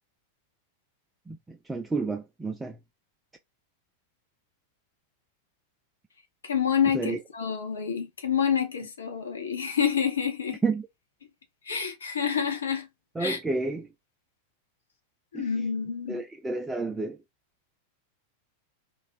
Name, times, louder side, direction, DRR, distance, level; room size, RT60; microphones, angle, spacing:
voice 1, 1.3-2.8 6.9-7.2 10.6-10.9 13.2-13.9 15.3-15.5 16.1-17.2, right 3 dB, 10° right, 0.3 m, -30 dB
voice 2, 6.4-10.6 11.7-12.9 13.2-13.4 15.3-16.2, left 7 dB, 70° left, 0.7 m, -28 dB
2.3 x 2.1 x 3.8 m
figure-of-eight pair, 90°, 0 cm